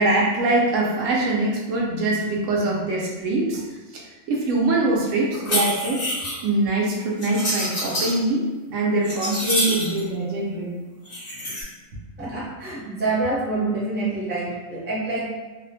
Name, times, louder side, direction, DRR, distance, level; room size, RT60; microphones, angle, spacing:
voice 1, 0.0-3.6 3.9-4.0 4.3-6.0 6.4-10.7, right 2 dB, 75° right, -3 dB, 0.9 m, -23 dB
sound 1, 5.3-6.4 7.2-8.1 8.7-10.0 11.1-11.6, left 1 dB, 60° left, 1.1 m, -27 dB
voice 2, 12.2-15.3, right 2 dB, 10° right, -9 dB, 0.6 m, -26 dB
2.7 x 2.1 x 2.6 m, 1.2 s
omnidirectional pair, 1.4 m